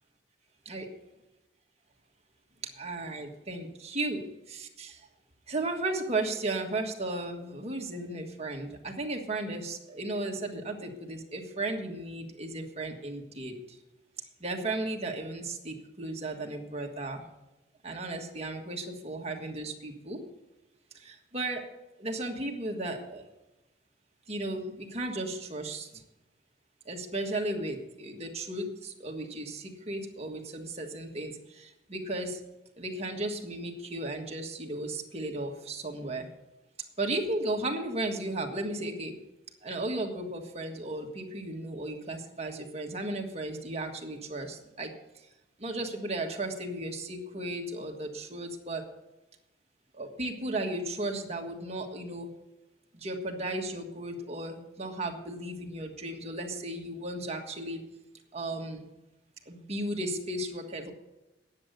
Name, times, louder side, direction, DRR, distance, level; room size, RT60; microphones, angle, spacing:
voice 1, 2.8-4.2 4.8-4.9 5.5-13.5 14.4-17.2 17.8-20.2 21.0-21.6 22.0-23.2 24.3-25.9 26.9-31.3 31.6-32.4 32.8-36.3 37.0-39.1 39.6-44.9 45.6-48.8 50.0-52.3 53.0-57.8 58.3-58.8 59.5-60.9, right 2 dB, 35° right, 2 dB, 1.6 m, -35 dB
10.0 x 7.8 x 8.1 m, 0.97 s
head